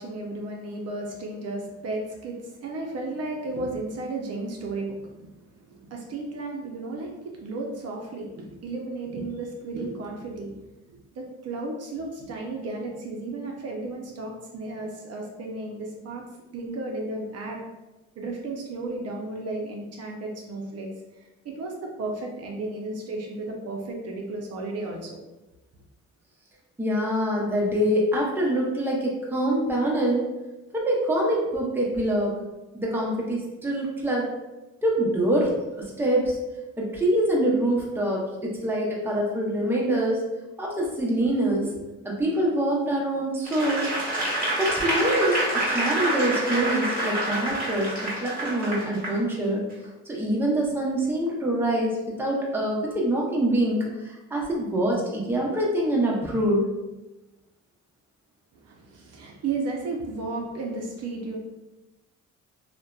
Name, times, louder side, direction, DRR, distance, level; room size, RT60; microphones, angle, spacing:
voice 1, 0.0-10.6 11.1-16.2 16.5-17.6 18.2-20.9 21.4-25.2 58.5-61.4, right 2 dB, 55° right, 0 dB, 0.5 m, -34 dB
voice 2, 26.8-30.3 30.7-32.3 32.7-34.3 34.8-36.4 36.8-40.2 40.6-41.7 42.0-43.9 44.6-49.6 50.1-56.7, right 1 dB, 5° right, -3 dB, 0.6 m, -25 dB
Applause / Crowd, 43.4-49.2 49.7-49.8, right 1 dB, 30° right, 1.1 m, -27 dB
2.6 x 2.1 x 2.2 m, 1.0 s
cardioid pair, 90°, 30 cm